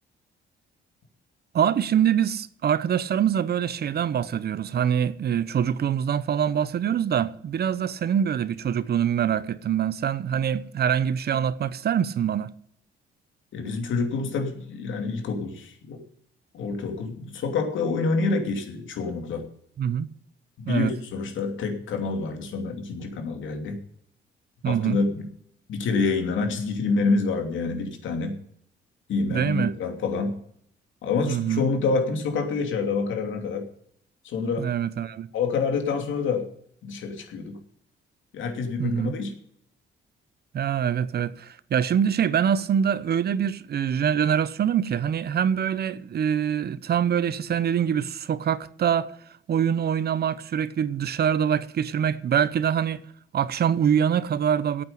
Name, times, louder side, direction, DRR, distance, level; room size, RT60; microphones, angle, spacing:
voice 1, 1.5-12.5 19.8-20.1 20.7-20.9 24.6-25.0 29.3-29.7 31.3-31.7 34.6-35.3 38.8-39.2 40.5-49.1 49.5-53.0 53.3-54.8, right 8 dB, 55° right, 0.8 m, -24 dB
voice 2, 13.5-16.0 16.5-19.4 20.6-23.8 24.6-25.3 25.7-28.4 29.1-30.3 31.0-33.7 34.2-34.7 35.3-36.5 36.8-37.6 38.3-39.3, left 4 dB, 75° left, 2.9 m, -27 dB
8.9 x 8.7 x 9.6 m
cardioid pair, 90°, 20 cm